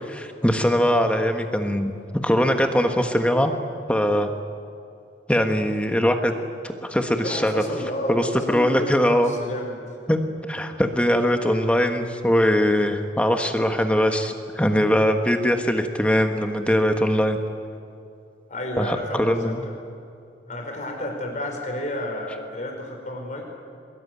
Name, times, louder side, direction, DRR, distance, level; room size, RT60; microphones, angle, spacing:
voice 1, 0.1-1.9 2.2-3.5 3.9-4.3 5.3-6.4 6.6-7.6 8.1-9.3 10.1-17.4 18.8-19.6, equal, 5° left, 5 dB, 1.4 m, -21 dB
voice 2, 7.2-9.8 18.5-19.7 20.5-23.4, left 1 dB, 45° left, 1 dB, 5.0 m, -31 dB
23.5 x 21.5 x 9.6 m, 2.5 s
head